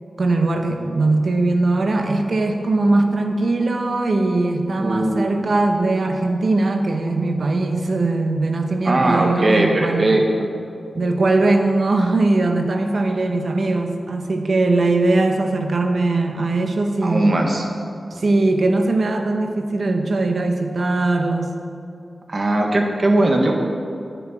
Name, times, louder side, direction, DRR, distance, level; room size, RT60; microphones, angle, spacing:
voice 1, 0.2-10.2 10.9-17.5 18.1-21.5, right 2 dB, 70° right, 5 dB, 1.0 m, -20 dB
voice 2, 4.8-5.4 8.8-10.5 17.0-17.6 22.3-23.5, right 1 dB, 50° right, 2 dB, 1.6 m, -19 dB
11.0 x 9.5 x 4.4 m, 2.5 s
cardioid pair, 45°, 0 cm